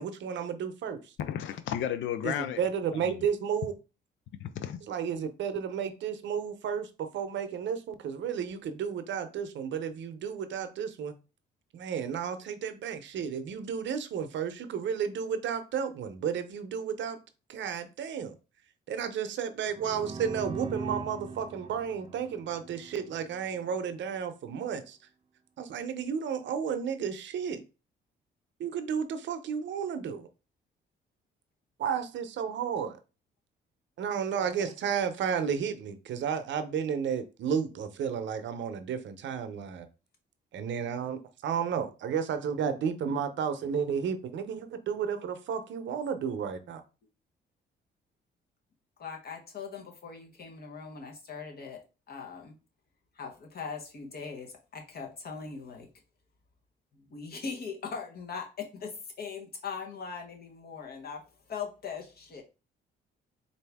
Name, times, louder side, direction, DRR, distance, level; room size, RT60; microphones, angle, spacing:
voice 1, 0.0-1.0 2.2-3.7 4.8-11.1 11.7-17.2 17.5-18.3 18.9-25.0 25.6-27.6 28.6-30.3 31.8-33.0 34.0-39.9 40.5-46.8, right 7 dB, 70° right, 0.7 m, -32 dB
voice 2, 1.2-2.6 3.0-3.2 4.4-4.8, left 10 dB, 75° left, 0.5 m, -33 dB
sound 1, 19.7-23.4, right 4 dB, 30° right, 0.5 m, -40 dB
voice 3, 34.3-34.7 49.0-52.6 53.1-55.9 56.9-62.4, left 5 dB, 50° left, 1.2 m, -40 dB
4.1 x 2.6 x 3.4 m
cardioid pair, 90°, 20 cm